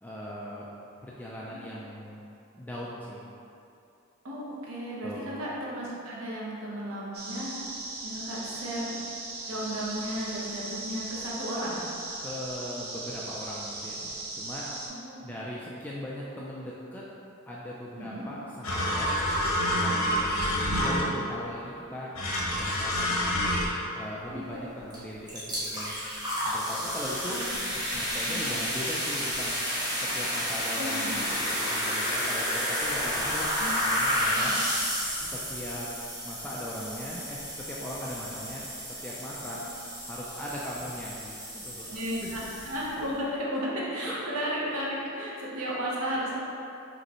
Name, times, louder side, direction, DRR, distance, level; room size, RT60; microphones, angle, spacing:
voice 1, 0.0-0.7 1.0-2.2 2.5-3.2 5.0-5.3 12.2-14.7 15.2-17.0 17.5-19.1 19.7-20.3 20.7-22.2 22.4-23.4 24.0-26.0 26.4-29.6 30.0-34.6 35.2-35.9 36.2-39.6 40.1-41.9 44.1-44.2, equal, 10° left, -6 dB, 0.3 m, -39 dB
voice 2, 4.2-7.5 8.0-9.0 9.5-11.8 14.9-15.1 18.0-18.2 24.3-24.6 27.3-27.6 28.3-28.5 30.7-31.1 33.6-33.7 34.3-34.6 41.9-42.4 42.6-46.4, equal, 85° right, -5 dB, 0.9 m, -34 dB
sound 1, 7.1-14.9, right 2 dB, 45° right, 0.7 m, -38 dB
sound 2, 18.6-21.3 22.1-23.7, equal, 80° left, 0.8 m, -27 dB
sound 3, 24.9-25.0 25.3-43.0, equal, 20° right, 1.0 m, -31 dB
5.1 x 3.1 x 3.0 m, 2.6 s
head